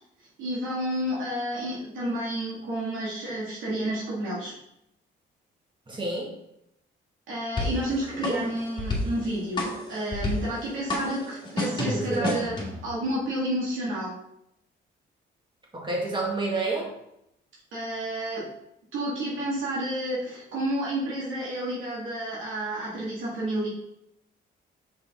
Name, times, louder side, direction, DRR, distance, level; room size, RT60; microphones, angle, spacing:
voice 1, 0.4-4.5 7.3-14.1 17.7-18.5 18.9-23.7, right 1 dB, 80° right, -7 dB, 2.2 m, -30 dB
voice 2, 5.9-6.3 8.2-8.3 11.8-12.4 15.7-16.9, right 3 dB, 25° right, -2 dB, 1.9 m, -29 dB
sound 1, 7.6-12.9, left 2 dB, 20° left, 1.9 m, -32 dB
5.5 x 5.0 x 3.7 m, 0.80 s
cardioid pair, 90°, 20 cm